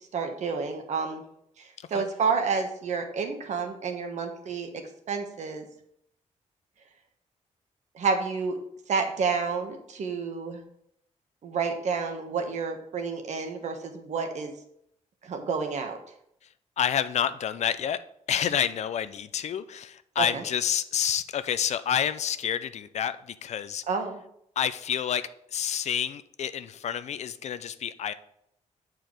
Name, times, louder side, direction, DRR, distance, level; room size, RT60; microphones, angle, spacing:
voice 1, 0.1-1.2 1.6-4.7 5.1-5.7 7.9-8.6 8.9-10.6 11.4-14.5 15.2-16.0 20.2-20.4 23.9-24.2, right 5 dB, 70° right, 4 dB, 1.2 m, -29 dB
voice 2, 16.8-18.0 18.3-23.8 24.6-28.1, left 9 dB, 65° left, 13 dB, 0.5 m, -29 dB
7.9 x 4.6 x 5.0 m, 0.74 s
cardioid pair, 110°, 12 cm